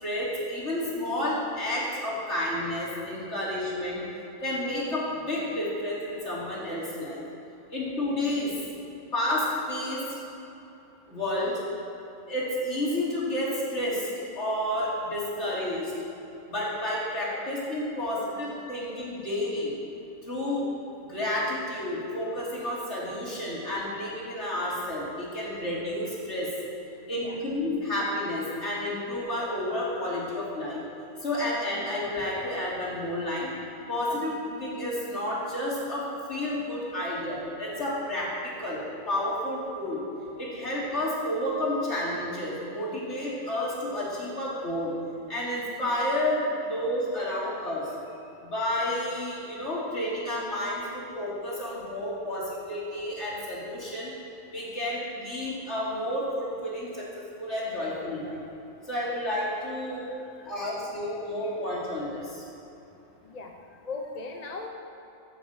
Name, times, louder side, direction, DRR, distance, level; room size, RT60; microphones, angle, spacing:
voice 1, 0.0-4.0 4.4-7.2 7.7-8.5 9.1-10.0 11.1-11.5 12.3-14.1 14.3-15.9 16.5-19.7 20.2-20.6 21.1-26.5 27.1-30.8 31.2-33.5 33.9-34.3 34.6-36.0 36.3-38.3 38.6-38.8 39.1-40.0 40.4-44.9 45.3-47.9 48.4-54.1 54.5-58.4 58.9-60.0 60.5-62.4, left 1 dB, 60° left, -7 dB, 3.7 m, -30 dB
voice 2, 26.9-27.4 28.5-28.6 34.0-34.2 48.1-48.4 59.9-61.2 61.4-61.6 63.2-64.7, left 3 dB, 35° left, 2 dB, 0.9 m, -42 dB
15.0 x 7.0 x 7.5 m, 2.9 s
omnidirectional pair, 1.3 m